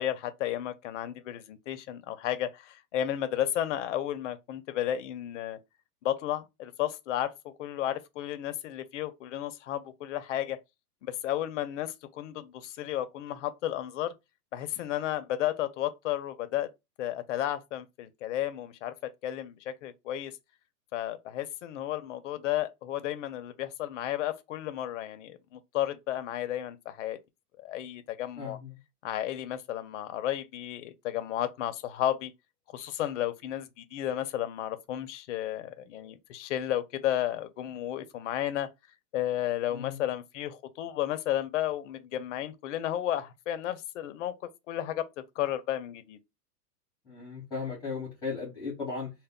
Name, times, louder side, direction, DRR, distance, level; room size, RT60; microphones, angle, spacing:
voice 1, 0.0-5.6 6.0-10.6 11.1-14.1 14.5-16.7 17.0-18.9 19.2-20.3 20.9-27.2 27.6-28.6 29.0-32.3 32.7-38.7 39.1-44.3 44.7-45.1 45.4-46.2, left 12 dB, 55° left, 0.5 m, -33 dB
voice 2, 28.4-28.7 39.7-40.0 47.1-49.1, left 4 dB, 10° left, 0.7 m, -36 dB
2.1 x 2.0 x 3.5 m
hypercardioid pair, 150°, 47 cm